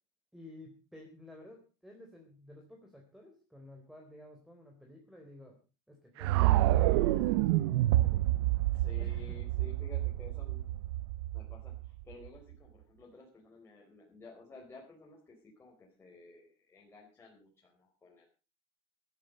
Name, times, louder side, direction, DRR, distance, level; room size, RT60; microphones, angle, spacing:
voice 1, 0.3-5.6 5.9-8.2 8.5-9.4, left 1 dB, ahead, 2 dB, 3.7 m, -53 dB
sound 1, 6.2-12.3, right 16 dB, 90° right, 0.8 m, -28 dB
voice 2, 8.7-10.7 11.3-18.3, left 3 dB, 20° left, -2 dB, 4.5 m, -54 dB
15.0 x 13.5 x 5.2 m, 0.34 s
supercardioid pair, 130°, 14 cm